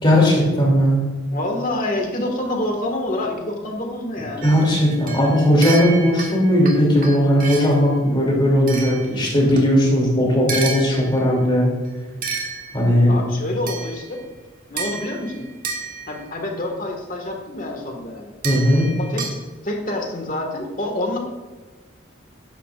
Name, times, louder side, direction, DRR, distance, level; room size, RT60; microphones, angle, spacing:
voice 1, 0.0-1.1 4.4-11.7 12.7-13.2 18.4-18.9, equal, 25° left, -3 dB, 2.9 m, -17 dB
voice 2, 1.3-4.5 13.1-14.2 14.7-15.5 16.1-18.3 19.0-19.4 19.6-21.2, left 1 dB, 40° left, 2 dB, 1.8 m, -27 dB
sound 1, 4.4-7.8 8.7-9.8 10.5-11.4 12.2-13.1 13.7-14.3 14.8-16.4 18.4-19.4, right 4 dB, 40° right, 1.5 m, -31 dB
13.5 x 10.5 x 2.5 m, 1.2 s
head